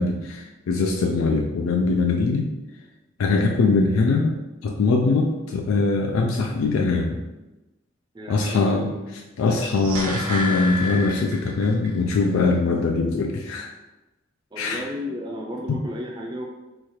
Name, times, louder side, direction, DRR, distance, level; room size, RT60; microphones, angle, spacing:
voice 1, 0.0-2.5 3.2-4.4 4.6-7.2 8.3-8.9 9.4-13.7 14.6-14.8, left 3 dB, 85° left, 2 dB, 0.4 m, -22 dB
voice 2, 8.1-9.0 14.5-16.4, equal, 20° right, -2 dB, 0.5 m, -33 dB
sound 1, 9.5-11.9 12.2-12.3, left 1 dB, 85° right, 0.8 m, -30 dB
3.1 x 2.4 x 4.3 m, 1.1 s
head